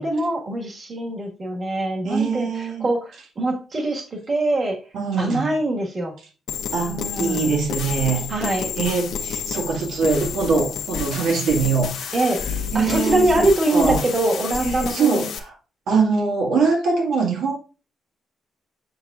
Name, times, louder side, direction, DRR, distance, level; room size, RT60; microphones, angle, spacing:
voice 1, 0.0-4.8 5.2-6.1 6.9-7.5 8.3-8.7 12.1-15.3, right 2 dB, 30° right, 0 dB, 1.6 m, -23 dB
voice 2, 2.0-2.9 4.9-5.5 6.7-12.2 12.7-13.5 13.7-14.0 14.7-15.5 15.9-17.6, right 4 dB, 90° right, 1 dB, 1.9 m, -23 dB
sound 1, 6.5-15.4, left 7 dB, 85° left, 0.9 m, -30 dB
7.9 x 7.3 x 2.4 m, 0.35 s
wide cardioid pair, 165°, 0 cm